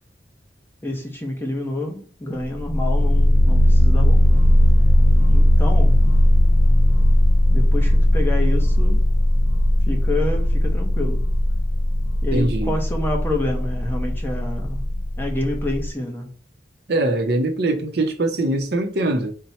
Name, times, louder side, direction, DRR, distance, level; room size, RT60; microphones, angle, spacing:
voice 1, 0.8-4.2 5.3-6.0 7.4-9.1 9.9-11.3 12.2-16.3, left 2 dB, 10° left, 0.8 m, -28 dB
sound 1, 2.5-15.9, left 1 dB, 45° left, 0.6 m, -17 dB
voice 2, 12.3-12.8 16.9-19.3, right 2 dB, 60° right, 0.7 m, -22 dB
4.2 x 2.2 x 4.1 m
head